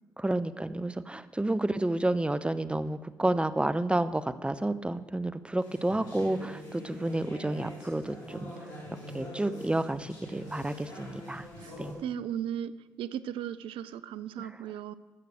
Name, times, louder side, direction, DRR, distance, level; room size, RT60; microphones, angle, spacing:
voice 1, 0.2-8.5 9.1-11.5 11.8-12.0 14.4-14.5, right 1 dB, 10° right, 13 dB, 0.6 m, -30 dB
sound 1, 5.6-11.9, equal, 85° left, 2.9 m, -44 dB
voice 2, 12.0-12.7 13.0-14.9, right 10 dB, 70° right, 15 dB, 0.4 m, -36 dB
14.5 x 6.7 x 6.5 m, 1.3 s
hypercardioid pair, 40°, 9 cm